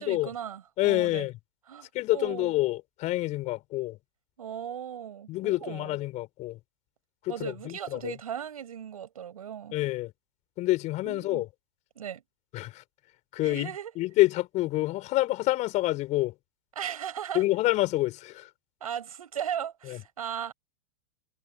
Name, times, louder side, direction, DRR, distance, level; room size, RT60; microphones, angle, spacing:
voice 1, 0.0-1.3 1.7-2.5 4.4-6.0 7.3-9.8 11.0-11.4 12.0-12.2 13.4-13.9 16.8-17.5 18.8-20.5, right 9 dB, 75° right, 7.1 m, -37 dB
voice 2, 0.8-1.3 1.9-4.0 5.3-6.6 7.2-8.1 9.7-10.1 10.6-11.5 12.5-12.8 13.3-16.3 17.3-18.5 19.9-20.0, left 18 dB, 40° left, 5.1 m, -27 dB
hypercardioid pair, 100°, 19 cm